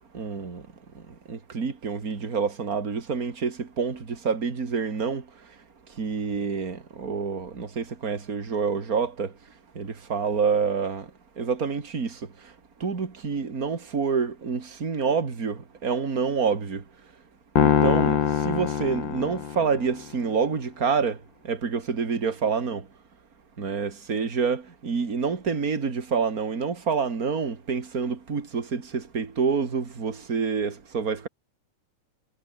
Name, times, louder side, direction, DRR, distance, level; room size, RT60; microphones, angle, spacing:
voice 1, 0.1-0.6 1.3-5.2 6.0-9.3 9.7-11.1 11.4-12.2 12.8-16.8 17.6-21.2 21.4-22.8 23.6-31.3, right 5 dB, 30° right, 2.9 m, -27 dB
sound 1, 17.6-19.9, left 9 dB, 50° left, 1.7 m, -23 dB
omnidirectional pair, 3.3 m